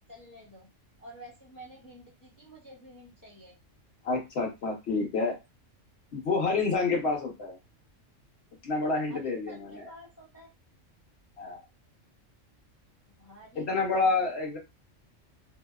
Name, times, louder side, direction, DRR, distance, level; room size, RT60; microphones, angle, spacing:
voice 1, 0.1-0.7 1.0-3.5 9.1-10.5 13.2-14.3, right 1 dB, 20° left, -2 dB, 0.5 m, -49 dB
voice 2, 4.0-5.3 6.1-7.6 8.6-9.9 11.4-11.6 13.6-14.6, left 3 dB, 60° left, 0 dB, 1.1 m, -28 dB
2.7 x 2.0 x 2.3 m, 0.24 s
omnidirectional pair, 1.3 m